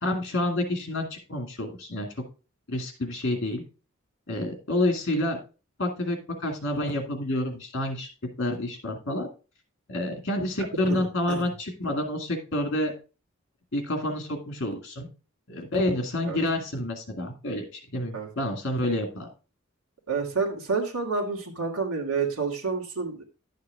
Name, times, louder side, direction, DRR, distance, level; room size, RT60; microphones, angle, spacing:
voice 1, 0.0-2.1 2.7-3.6 4.3-5.4 5.8-8.1 8.4-9.3 9.9-12.9 13.7-15.1 15.5-19.3, left 1 dB, 55° left, 3 dB, 2.1 m, -28 dB
voice 2, 10.8-11.4 16.2-16.4 18.1-18.5 20.1-23.2, right 4 dB, 80° right, -2 dB, 2.1 m, -29 dB
11.0 x 6.7 x 3.4 m, 0.33 s
head